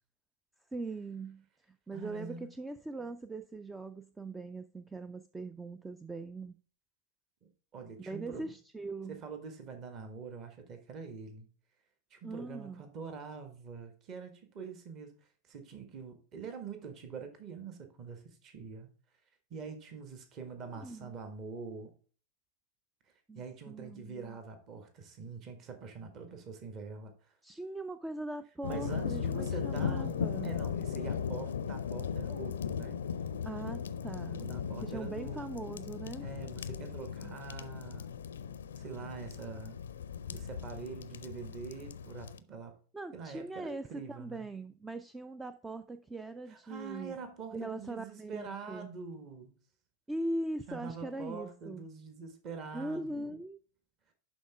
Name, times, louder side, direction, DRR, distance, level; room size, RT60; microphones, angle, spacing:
voice 1, 0.7-6.6 8.0-9.2 12.2-12.8 20.8-21.1 23.3-24.4 27.4-30.5 33.4-34.4 34.8-36.3 42.9-47.2 47.5-48.9 50.1-51.8 52.7-53.6, right 2 dB, 10° right, 0.4 m, -41 dB
voice 2, 1.9-2.5 7.7-8.5 9.1-11.5 12.1-15.1 15.4-18.9 19.5-21.9 23.3-27.4 28.7-33.0 34.4-35.6 36.2-38.1 38.8-39.8 40.3-42.8 43.1-44.5 46.5-49.6 50.7-53.4, right 5 dB, 35° right, 1.5 m, -45 dB
sound 1, 28.6-42.4, left 7 dB, 65° left, 0.5 m, -37 dB
11.5 x 4.1 x 3.5 m
figure-of-eight pair, 90°, 0 cm